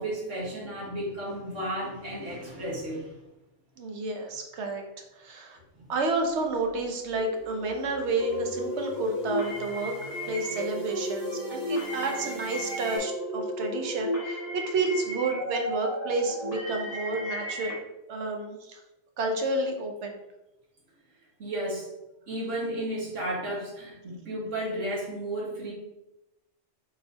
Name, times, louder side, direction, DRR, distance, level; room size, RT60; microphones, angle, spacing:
voice 1, 0.0-3.1 5.8-5.9 21.4-21.9 22.3-25.7, right 1 dB, 90° right, -5 dB, 1.9 m, -33 dB
voice 2, 3.8-4.8 5.2-5.6 5.9-9.9 10.3-17.8 18.1-18.8 19.2-20.2, right 2 dB, 70° right, 3 dB, 1.0 m, -30 dB
sound 1, 6.6-13.0, right 2 dB, 40° right, 1.5 m, -46 dB
sound 2, 7.1-9.1 10.1-15.1 16.5-17.0, right 4 dB, 5° left, 0.4 m, -41 dB
sound 3, 8.2-17.7, left 1 dB, 35° left, 1.6 m, -34 dB
4.5 x 4.1 x 2.8 m, 0.94 s
omnidirectional pair, 1.2 m